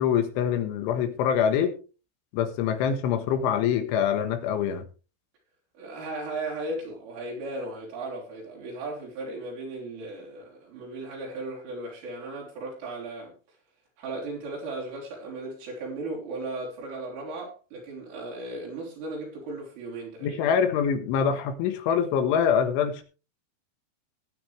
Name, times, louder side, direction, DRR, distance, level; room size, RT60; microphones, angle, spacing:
voice 1, 0.0-1.7 2.3-4.8 20.2-23.0, left 8 dB, 80° left, 8 dB, 3.8 m, -24 dB
voice 2, 5.8-13.3 14.0-20.4, right 2 dB, 80° right, -3 dB, 6.4 m, -36 dB
19.0 x 9.2 x 3.3 m, 0.34 s
omnidirectional pair, 5.6 m